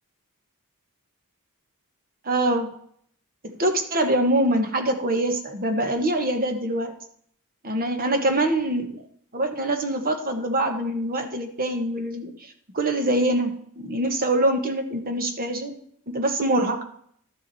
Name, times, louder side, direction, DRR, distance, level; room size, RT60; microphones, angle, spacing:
voice 1, 2.2-2.7 3.4-6.9 7.6-9.0 9.3-15.8 16.1-16.8, right 1 dB, 40° right, 6 dB, 1.3 m, -24 dB
12.0 x 7.3 x 4.1 m, 0.65 s
head